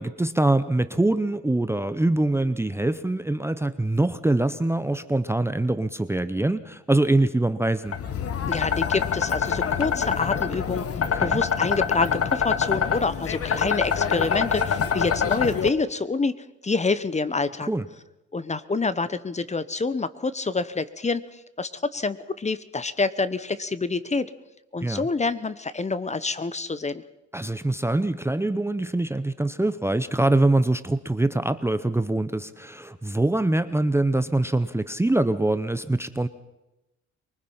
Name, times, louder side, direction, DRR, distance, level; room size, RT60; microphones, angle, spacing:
voice 1, 0.0-7.9 11.1-11.4 17.7-17.8 24.8-25.0 27.3-36.3, right 2 dB, 10° right, 13 dB, 0.7 m, -24 dB
sound 1, 7.9-15.7, left 7 dB, 50° left, 1.5 m, -25 dB
voice 2, 8.5-10.9 11.2-16.4 16.6-17.7 18.3-24.3 24.7-27.0, left 4 dB, 25° left, 15 dB, 0.9 m, -27 dB
23.5 x 20.0 x 5.7 m, 0.96 s
cardioid pair, 90°, 30 cm